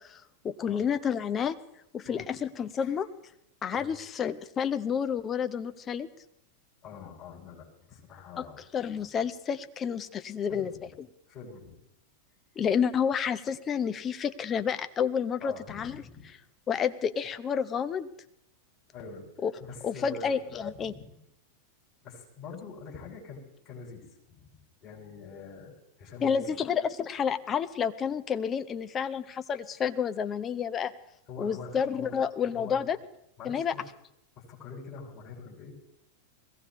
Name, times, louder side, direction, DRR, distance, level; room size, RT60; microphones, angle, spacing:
voice 1, 0.0-1.6 1.9-3.1 3.6-6.1 8.4-8.5 8.7-10.7 11.0-11.1 12.6-16.0 16.7-18.1 19.4-19.5 19.8-20.9 26.2-30.9 31.4-33.0 33.4-33.7, left 7 dB, 25° left, 11 dB, 0.8 m, -30 dB
voice 2, 6.8-8.6 10.5-10.9 11.3-11.8 15.4-16.3 18.9-19.3 19.7-20.3 20.7-21.0 22.0-26.6 31.3-32.2 32.5-32.8 33.4-33.9 34.4-35.8, left 4 dB, 40° left, -4 dB, 7.0 m, -45 dB
21.5 x 16.5 x 3.2 m, 0.78 s
figure-of-eight pair, 90°, 0 cm